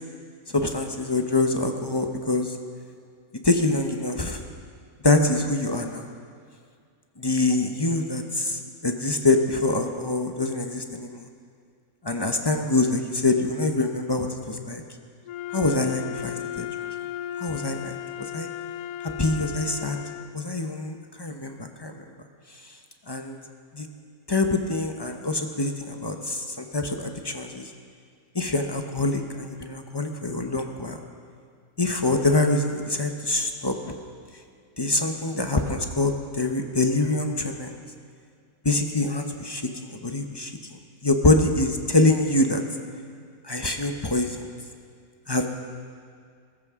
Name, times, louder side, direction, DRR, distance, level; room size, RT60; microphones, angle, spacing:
voice 1, 0.5-2.6 3.4-4.4 5.0-6.0 7.2-11.3 12.0-14.8 15.5-16.7 17.4-18.0 18.3-18.5 19.0-20.0 20.3-21.9 23.1-23.4 23.7-23.9 24.3-27.7 28.3-31.0 31.8-33.9 34.8-37.8 38.6-42.6 43.4-44.5 45.3-45.5, left 2 dB, 25° left, 4 dB, 0.6 m, -25 dB
Wind instrument woodwind instrument, 15.2-20.4, left 11 dB, 80° left, 1.1 m, -35 dB
22.0 x 13.5 x 3.7 m, 2.2 s
omnidirectional pair, 1.5 m